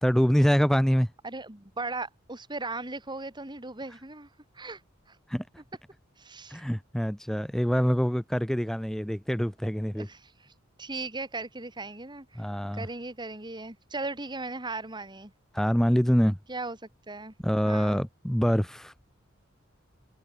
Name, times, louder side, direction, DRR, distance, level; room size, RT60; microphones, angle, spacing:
voice 1, 0.0-1.1 5.3-5.4 6.5-10.1 12.4-12.9 15.5-16.4 17.4-18.9, equal, ahead, 1.0 m, -25 dB
voice 2, 1.2-4.3 4.5-4.8 5.1-5.2 6.2-6.6 10.0-10.5 10.8-12.4 12.7-15.3 16.5-16.8 17.1-17.3 17.6-18.0, right 3 dB, 25° right, 3.4 m, -37 dB
head